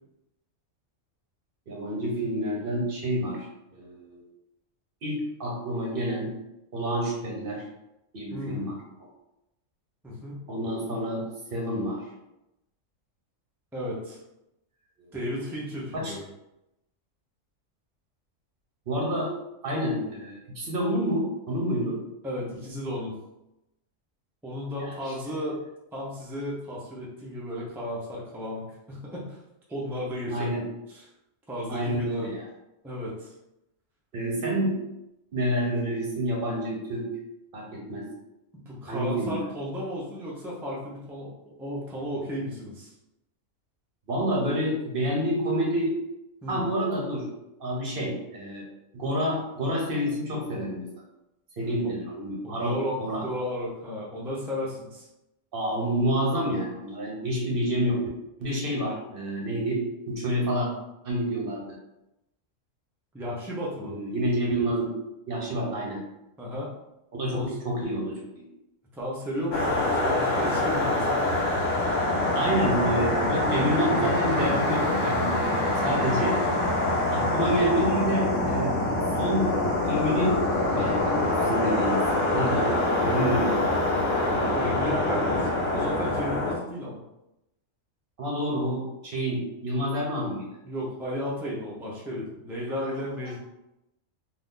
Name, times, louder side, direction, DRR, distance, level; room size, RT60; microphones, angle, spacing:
voice 1, 1.7-3.5 3.7-4.2 5.0-6.3 6.7-7.6 8.1-8.8 10.5-11.2 11.5-12.0 15.0-15.1 15.9-16.1 18.9-19.3 19.6-22.0 24.8-25.1 30.3-30.6 31.7-32.4 34.1-34.8 35.3-37.1 37.5-38.1 38.9-39.4 44.1-45.9 46.5-47.3 47.6-48.7 48.9-50.9 51.6-53.2 55.5-58.0 58.4-60.7 61.0-61.7 63.8-64.9 65.3-66.0 67.1-68.4 72.3-76.4 77.1-78.7 79.2-79.5 79.8-80.4 80.7-82.0 82.3-82.7 83.0-83.6 88.2-90.5, equal, 50° right, -2 dB, 0.8 m, -28 dB
voice 2, 8.3-8.7 10.0-10.4 13.7-14.2 15.1-16.2 22.2-23.1 24.4-25.6 25.9-29.4 29.7-30.5 30.9-31.1 31.5-32.3 32.8-33.3 38.7-42.9 46.4-46.6 51.6-51.9 52.4-55.1 63.1-63.9 66.4-66.7 67.3-67.6 68.9-71.2 77.3-77.5 84.4-87.0 90.6-93.4, equal, 5° right, -5 dB, 0.3 m, -34 dB
sound 1, 69.5-86.6, left 2 dB, 75° left, 1.0 m, -25 dB
2.6 x 2.4 x 3.6 m, 0.90 s
omnidirectional pair, 1.3 m